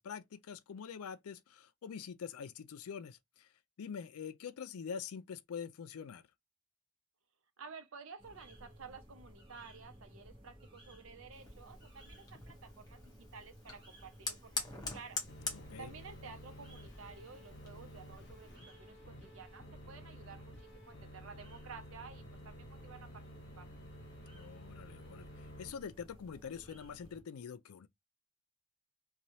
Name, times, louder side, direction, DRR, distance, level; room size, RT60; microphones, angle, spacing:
voice 1, 0.0-3.5 3.8-6.3 15.5-15.9 24.3-27.9, left 6 dB, 85° left, 0.4 m, -45 dB
voice 2, 7.6-15.2 15.8-23.2 23.6-23.7, right 5 dB, 70° right, 0.7 m, -53 dB
sound 1, 8.2-27.2, equal, 25° right, 0.9 m, -57 dB
Fire, 11.3-18.6, left 4 dB, 20° left, 0.8 m, -46 dB
sound 2, 15.3-25.7, equal, 50° left, 0.8 m, -53 dB
3.0 x 2.3 x 2.7 m
head